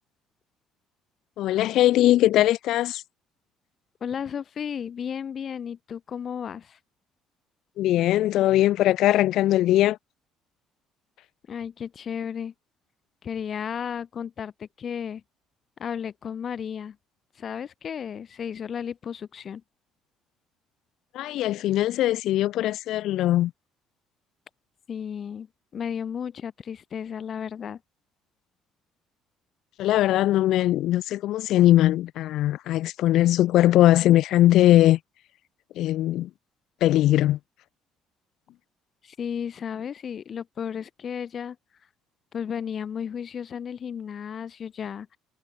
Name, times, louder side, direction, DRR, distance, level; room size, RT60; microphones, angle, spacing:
voice 1, 1.4-3.0 7.8-10.0 21.1-23.5 29.8-35.0 35.7-36.3 36.8-37.4, left 14 dB, 55° left, 1.3 m, -20 dB
voice 2, 4.0-6.8 11.5-12.5 13.2-15.2 15.8-17.0 17.3-19.6 24.9-25.5 25.7-27.8 39.0-41.6 42.3-45.2, left 8 dB, 30° left, 1.2 m, -33 dB
cardioid pair, 180°, 0 cm